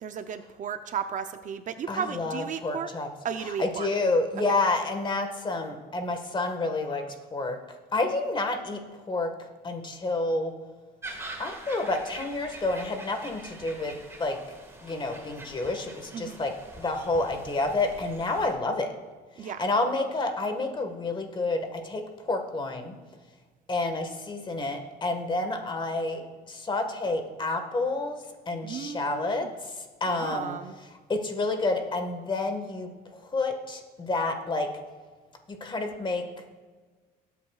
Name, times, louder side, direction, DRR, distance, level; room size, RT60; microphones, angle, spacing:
voice 1, 0.0-2.9 3.2-3.9 16.1-16.4 19.4-19.7 28.6-29.5 30.1-30.8, right 7 dB, 50° right, 9 dB, 0.6 m, -34 dB
voice 2, 1.9-3.1 3.6-7.0 7.3-7.6 7.9-9.3 9.6-10.5 11.4-14.4 14.8-18.9 19.4-23.0 23.7-28.2 28.5-30.6 31.1-34.7 35.5-36.3, left 2 dB, 30° left, 5 dB, 1.6 m, -29 dB
sound 1, 11.0-18.5, right 2 dB, 15° right, 1.8 m, -44 dB
19.5 x 8.5 x 2.4 m, 1.4 s
cardioid pair, 110°, 17 cm